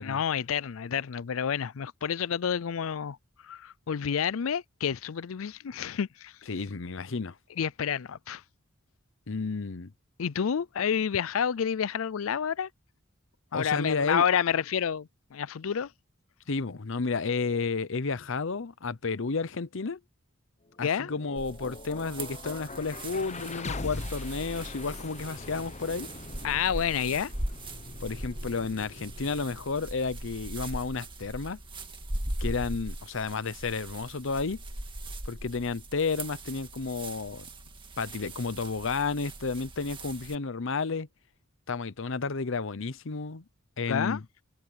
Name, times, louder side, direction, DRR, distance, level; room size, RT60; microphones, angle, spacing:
voice 1, 0.0-3.2 3.4-6.3 7.6-8.4 10.2-12.7 13.5-15.9 20.8-21.1 26.4-27.3 43.9-44.2, left 7 dB, 85° left, 0.5 m, -29 dB
voice 2, 6.5-7.4 9.3-9.9 13.5-14.2 16.5-20.0 20.8-26.1 28.0-31.6 32.4-34.6 35.2-37.5 38.0-41.1 41.7-43.4 43.8-44.2, left 4 dB, 65° left, 0.8 m, -32 dB
sound 1, 20.7-32.7, left 3 dB, 35° left, 0.9 m, -43 dB
sound 2, 21.4-40.4, right 1 dB, 25° right, 2.1 m, -40 dB
head